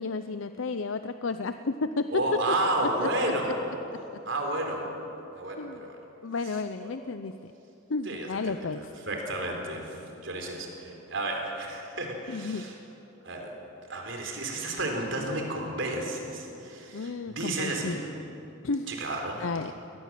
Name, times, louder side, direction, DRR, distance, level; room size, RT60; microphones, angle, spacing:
voice 1, 0.0-2.1 3.0-3.5 5.6-5.8 6.2-7.5 7.9-8.9 12.3-12.7 16.9-18.0 18.6-18.9 19.4-19.7, left 3 dB, 70° left, 10 dB, 0.6 m, -32 dB
voice 2, 2.1-3.6 4.3-4.9 5.3-6.0 6.8-7.0 8.1-12.7 13.2-13.5 13.9-18.0 18.9-19.4, right 1 dB, 65° right, 2 dB, 4.1 m, -32 dB
24.0 x 19.0 x 7.6 m, 3.0 s
head